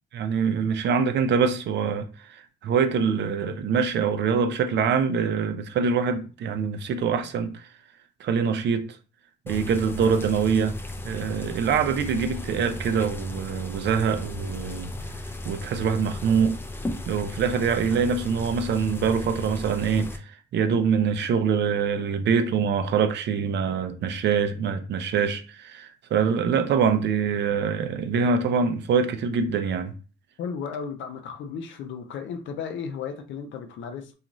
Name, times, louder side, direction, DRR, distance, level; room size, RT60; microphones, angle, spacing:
voice 1, 0.1-2.1 2.6-7.6 8.2-8.9 9.5-10.7 11.0-14.9 15.4-16.6 17.1-29.9, right 6 dB, 60° right, 0.5 m, -24 dB
sound 1, 9.5-20.2, left 1 dB, 10° left, 0.4 m, -35 dB
voice 2, 30.4-34.1, left 6 dB, 70° left, 0.5 m, -34 dB
2.5 x 2.4 x 2.9 m
cardioid pair, 90°, 20 cm